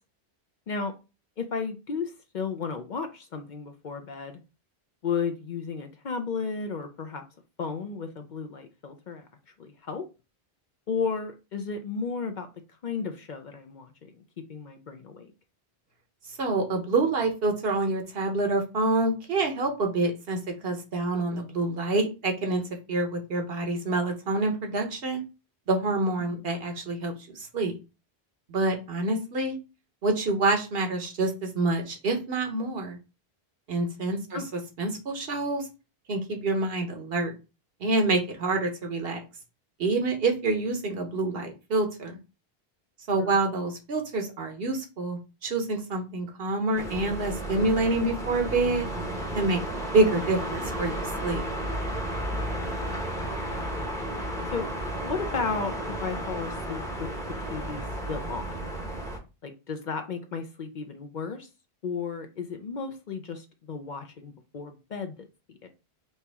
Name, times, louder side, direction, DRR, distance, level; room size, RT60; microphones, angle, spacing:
voice 1, 1.4-4.4 5.0-7.2 7.6-9.3 9.6-10.1 10.9-12.5 12.8-14.2 14.5-15.3 26.3-26.5 34.3-34.5 43.2-43.4 53.3-53.6 54.5-54.7 55.0-58.7 59.4-61.5 61.8-65.7, left 5 dB, 55° left, 6 dB, 0.7 m, -34 dB
voice 2, 16.4-22.6 22.9-25.2 25.7-27.8 28.5-29.6 30.0-33.0 33.7-34.4 34.8-35.7 36.1-37.3 37.8-39.2 39.8-42.2 43.1-48.9 49.3-51.4, right 2 dB, 70° right, 4 dB, 1.1 m, -27 dB
sound 1, 46.8-59.2, right 1 dB, 5° left, 0.8 m, -33 dB
4.2 x 2.9 x 3.5 m, 0.29 s
omnidirectional pair, 1.1 m